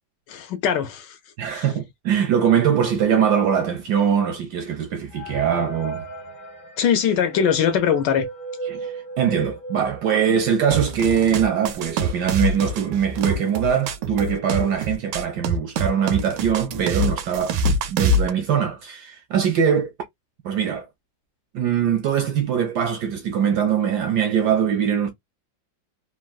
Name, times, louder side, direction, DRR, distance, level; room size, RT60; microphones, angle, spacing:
voice 1, 0.3-1.2 1.5-1.7 6.8-8.3, left 8 dB, 75° left, 1.1 m, -21 dB
voice 2, 1.4-6.0 8.7-19.9 20.4-20.9 21.5-25.1, right 8 dB, 75° right, 1.0 m, -22 dB
sound 1, 5.1-10.5 11.0-11.1 11.3-11.4 12.2-12.3 12.6-13.0, right 3 dB, 45° left, 0.7 m, -35 dB
sound 2, 10.7-18.3, right 1 dB, 90° right, 1.4 m, -25 dB
3.5 x 2.2 x 2.3 m
omnidirectional pair, 2.2 m